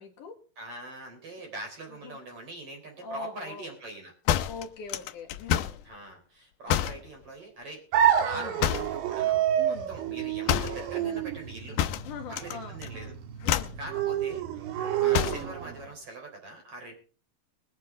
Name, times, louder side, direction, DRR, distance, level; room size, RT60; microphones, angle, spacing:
voice 1, 0.0-0.4 2.0-2.2 3.0-3.7 4.5-5.8 8.3-8.6 9.6-9.9 11.9-12.8 13.4-13.8 15.0-15.3, left 5 dB, 60° left, 1 dB, 3.0 m, -42 dB
voice 2, 0.6-4.1 5.8-11.9 12.3-13.1 13.4-16.9, right 2 dB, 35° right, 1 dB, 4.5 m, -43 dB
sound 1, 4.3-5.8 6.7-7.1 8.6-9.0 10.5-10.8 11.8-12.6 12.8-13.1 13.4-13.8 15.1-15.5, left 11 dB, 85° left, 1.8 m, -28 dB
sound 2, 7.9-15.9, right 10 dB, 90° right, 3.6 m, -29 dB
21.0 x 9.7 x 3.7 m, 0.39 s
omnidirectional pair, 4.6 m